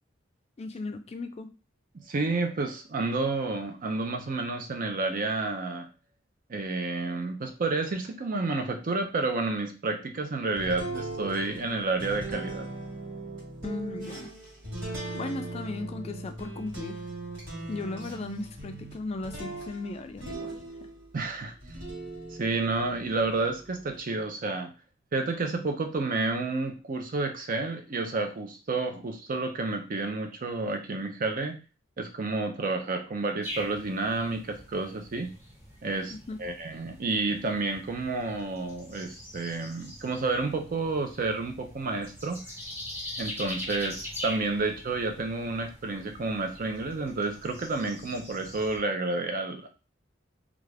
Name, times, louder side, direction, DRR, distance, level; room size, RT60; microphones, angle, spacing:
voice 1, 0.6-1.5 13.6-14.3 15.1-17.0 17.7-20.5 20.8-20.9 36.1-36.4, left 3 dB, 35° left, 7 dB, 0.4 m, -36 dB
voice 2, 2.1-5.9 6.5-12.7 21.1-21.5 22.3-24.7 25.1-31.6 32.0-35.3 35.8-42.4 43.2-49.7, right 3 dB, 45° right, 5 dB, 0.5 m, -30 dB
sound 1, 10.6-21.2 21.6-23.9, right 2 dB, 70° right, 1.6 m, -39 dB
sound 2, 33.4-48.8, left 1 dB, 10° right, 1.0 m, -43 dB
2.4 x 2.4 x 3.2 m, 0.33 s
head